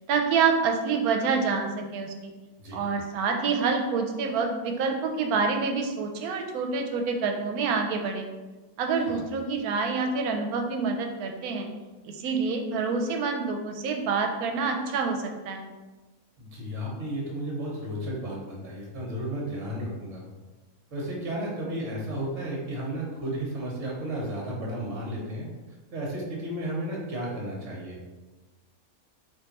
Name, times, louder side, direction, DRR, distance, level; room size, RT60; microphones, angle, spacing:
voice 1, 0.1-2.3 2.7-8.3 8.8-11.7 12.1-15.2 15.5-15.7, right 5 dB, 80° right, 3 dB, 1.1 m, -27 dB
voice 2, 2.6-2.9 9.1-9.2 16.4-20.3 20.9-25.5 25.9-28.0, right 1 dB, 55° right, -3 dB, 1.3 m, -33 dB
3.5 x 2.6 x 4.0 m, 1.2 s
omnidirectional pair, 1.5 m